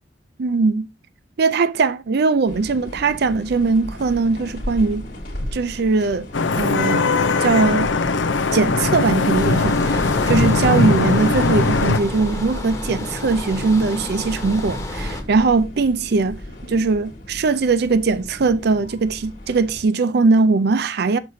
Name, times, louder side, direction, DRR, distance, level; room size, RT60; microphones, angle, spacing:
voice 1, 0.4-0.9 1.4-5.1 5.5-7.1 7.4-7.9 8.5-16.4 16.7-21.2, right 4 dB, 60° right, 0.5 m, -20 dB
sound 1, 2.5-19.8, left 1 dB, 50° left, 1.7 m, -35 dB
Vehicle horn car horn honking / Traffic noise roadway noise, 6.3-12.0, left 3 dB, 80° left, 0.6 m, -20 dB
sound 2, 9.4-15.2, left 1 dB, 20° left, 1.3 m, -30 dB
6.5 x 5.9 x 2.7 m
head